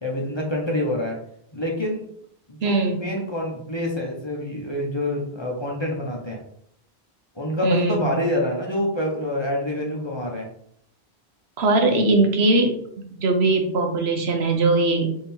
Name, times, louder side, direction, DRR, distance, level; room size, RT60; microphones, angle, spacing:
voice 1, 0.0-1.2 1.5-2.1 2.5-6.4 7.3-10.5, left 1 dB, 30° left, -1 dB, 0.8 m, -26 dB
voice 2, 2.6-3.0 7.6-8.0 11.6-12.8 13.2-15.1, right 2 dB, 75° right, 4 dB, 1.1 m, -20 dB
3.5 x 2.8 x 4.3 m, 0.68 s
omnidirectional pair, 1.1 m